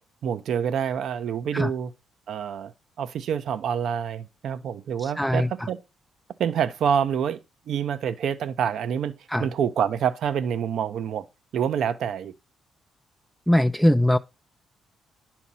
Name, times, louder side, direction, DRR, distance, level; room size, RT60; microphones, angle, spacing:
voice 1, 0.2-1.9 2.3-2.7 3.0-5.8 6.4-7.4 7.7-9.1 9.4-11.2 11.5-12.3, right 8 dB, 70° right, 0.8 m, -27 dB
voice 2, 5.0-5.7 9.3-9.5 13.5-14.2, left 1 dB, ahead, 0.4 m, -21 dB
10.0 x 4.5 x 5.5 m
cardioid pair, 90°, 0 cm